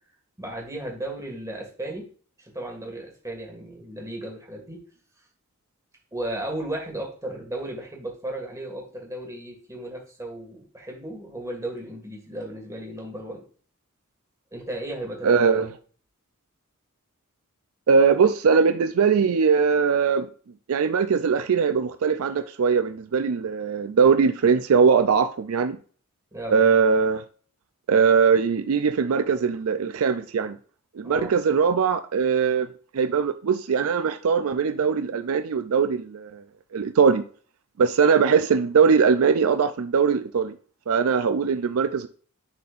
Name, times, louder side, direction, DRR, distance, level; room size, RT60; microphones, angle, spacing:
voice 1, 0.4-2.0 2.5-4.8 6.1-13.4 14.5-15.7 26.3-26.5 31.0-31.3, right 1 dB, 15° right, 1.8 m, -35 dB
voice 2, 15.2-15.7 17.9-20.3 20.7-25.8 26.5-27.2 27.9-30.6 31.0-32.7 32.9-36.4 36.7-37.2 37.8-40.5 40.9-42.1, right 6 dB, 70° right, 0.4 m, -21 dB
10.5 x 4.2 x 2.5 m
head